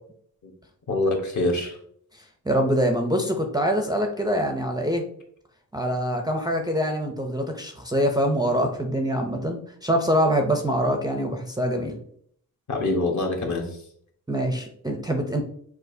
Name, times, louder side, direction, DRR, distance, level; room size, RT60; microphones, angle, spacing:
voice 1, 0.9-1.8 12.7-13.8, left 2 dB, 55° left, 1 dB, 1.1 m, -25 dB
voice 2, 2.1-5.1 5.7-11.9 14.3-15.4, equal, 10° right, 1 dB, 0.4 m, -24 dB
6.3 x 2.4 x 2.6 m, 0.63 s
wide cardioid pair, 130°, 36 cm